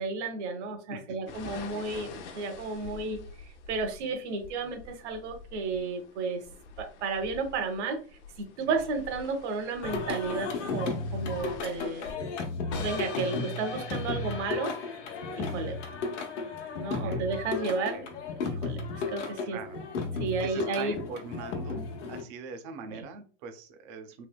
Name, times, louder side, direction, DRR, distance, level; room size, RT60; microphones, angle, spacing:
voice 1, 0.0-6.4 6.8-8.0 8.4-12.0 12.8-15.0 15.3-15.8 16.7-18.0 18.4-19.8 20.2-21.0 22.9-23.0, right 4 dB, 70° right, 4 dB, 0.9 m, -33 dB
sound 1, 1.3-12.1, left 5 dB, 70° left, 0.7 m, -48 dB
Singing, 9.8-22.2, left 4 dB, 85° left, 1.0 m, -34 dB
sound 2, 12.7-18.7, left 5 dB, 30° left, 0.5 m, -44 dB
voice 2, 17.0-17.3 17.9-18.1 19.5-19.8 20.4-24.2, right 5 dB, 25° right, 6 dB, 0.4 m, -42 dB
3.2 x 2.8 x 2.2 m, 0.38 s
supercardioid pair, 150°, 36 cm